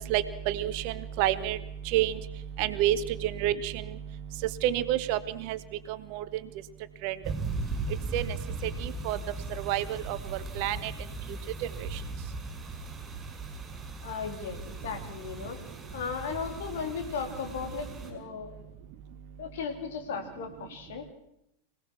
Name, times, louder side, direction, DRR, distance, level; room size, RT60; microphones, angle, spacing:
voice 1, 0.0-1.6 1.9-2.2 2.6-3.8 4.6-5.6 6.1-6.2 7.0-7.1 8.1-8.4 8.6-9.2 9.6-10.2 10.6-10.9, right 12 dB, 45° right, 14 dB, 1.1 m, -28 dB
sound 1, 7.2-18.1, right 3 dB, 20° right, 6.0 m, -38 dB
voice 2, 14.0-15.6 15.9-18.6 19.4-21.1, left 6 dB, 55° left, 5 dB, 3.4 m, -36 dB
25.5 x 17.5 x 6.2 m, 0.79 s
figure-of-eight pair, 90°, 0 cm